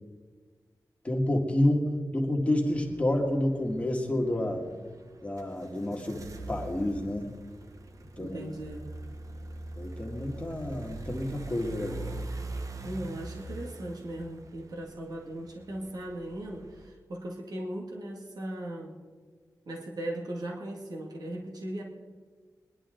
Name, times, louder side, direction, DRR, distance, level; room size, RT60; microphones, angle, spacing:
voice 1, 1.0-4.7 5.2-7.3 8.2-8.4 9.8-12.2, left 1 dB, 20° left, 1 dB, 2.0 m, -29 dB
sound 1, 2.6-16.9, right 2 dB, 50° right, 1.0 m, -43 dB
voice 2, 8.2-8.8 12.8-18.9 19.7-21.8, right 1 dB, 70° right, -1 dB, 2.2 m, -38 dB
23.5 x 11.0 x 3.8 m, 1.5 s
wide cardioid pair, 160°, 7 cm